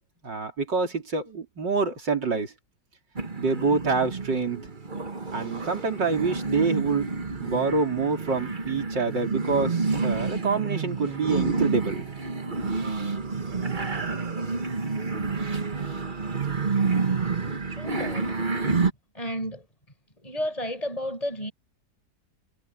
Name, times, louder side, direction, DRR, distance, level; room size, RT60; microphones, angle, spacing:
voice 1, 0.2-2.5 3.4-4.7 5.3-7.1 7.4-12.1, right 4 dB, 80° right, 4.5 m, -26 dB
sound 1, 3.2-18.9, right 4 dB, 30° right, 1.8 m, -29 dB
voice 2, 17.7-18.3 19.1-19.7 20.2-21.5, equal, 20° left, 5.7 m, -32 dB
omnidirectional pair, 1.9 m